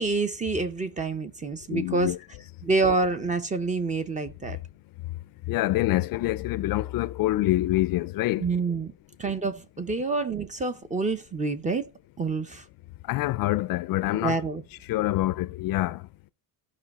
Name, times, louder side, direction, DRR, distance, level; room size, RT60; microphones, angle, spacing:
voice 1, 0.0-2.1 2.6-4.6 8.4-8.9 9.2-11.9 12.2-12.7 14.1-14.6, right 3 dB, 15° right, 0.5 m, -27 dB
voice 2, 1.7-2.2 5.5-8.5 13.1-14.4 14.9-16.0, left 16 dB, 50° left, 0.5 m, -26 dB
14.5 x 5.3 x 4.1 m
cardioid pair, 165°, 46 cm